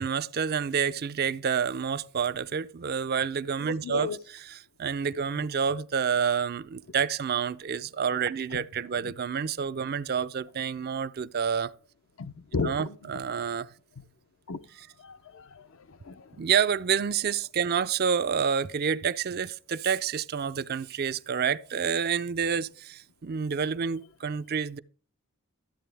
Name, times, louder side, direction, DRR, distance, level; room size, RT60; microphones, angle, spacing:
voice 1, 0.0-4.1 4.5-11.7 12.6-13.7 16.4-24.8, right 7 dB, 45° right, 0.4 m, -28 dB
voice 2, 3.8-4.2 9.0-9.1 12.2-13.0 14.5-14.6 15.0-16.4, left 4 dB, 65° left, 0.6 m, -34 dB
13.0 x 8.3 x 3.4 m
head